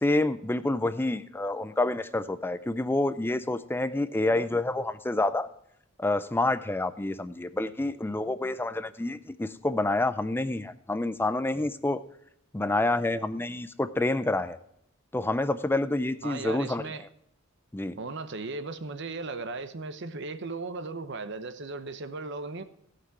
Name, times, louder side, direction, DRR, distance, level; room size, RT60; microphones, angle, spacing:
voice 1, 0.0-5.5 6.0-12.0 12.5-14.6 15.1-16.9 17.7-18.0, left 2 dB, 10° left, 0.4 m, -28 dB
voice 2, 16.2-17.0 18.0-22.6, right 3 dB, 60° right, 0.8 m, -36 dB
16.5 x 6.0 x 4.7 m
head